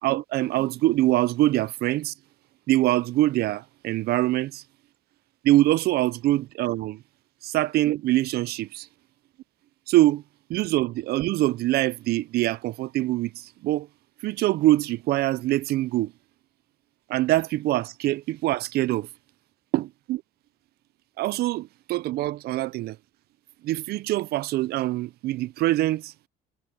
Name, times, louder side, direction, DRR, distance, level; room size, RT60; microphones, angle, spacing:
voice 1, 0.0-2.1 2.7-4.6 5.4-7.0 7.4-8.9 9.9-10.2 10.5-13.9 14.2-16.1 17.1-19.1 19.7-20.2 21.2-23.0 23.6-26.1, right 16 dB, 70° right, 0.5 m, -24 dB
cardioid pair, 110°, 17 cm